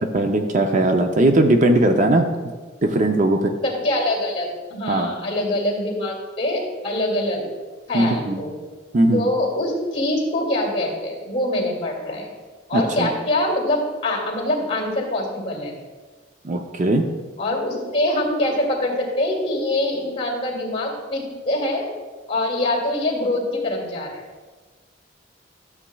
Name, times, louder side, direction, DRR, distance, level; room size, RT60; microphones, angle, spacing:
voice 1, 0.1-2.3 2.8-3.5 4.9-5.1 7.9-8.4 8.9-9.2 12.7-13.1 16.4-17.1, right 1 dB, 40° right, 5 dB, 0.5 m, -18 dB
voice 2, 3.6-7.4 7.9-8.5 9.1-12.3 12.7-15.7 17.4-21.9 22.3-24.2, left 1 dB, 30° left, 0 dB, 2.3 m, -24 dB
13.0 x 7.2 x 2.3 m, 1.4 s
head